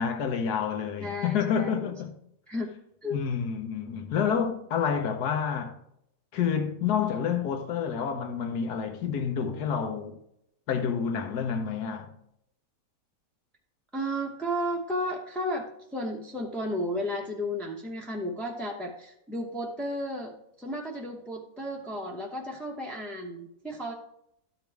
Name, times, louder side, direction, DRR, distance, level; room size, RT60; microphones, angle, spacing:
voice 1, 0.0-2.2 3.1-5.8 6.3-10.1 10.7-12.1, left 7 dB, 70° left, 1.5 m, -29 dB
voice 2, 1.0-1.9 2.5-2.7 3.0-3.2 13.9-23.9, equal, ahead, 0.5 m, -33 dB
12.0 x 5.3 x 3.4 m
omnidirectional pair, 1.8 m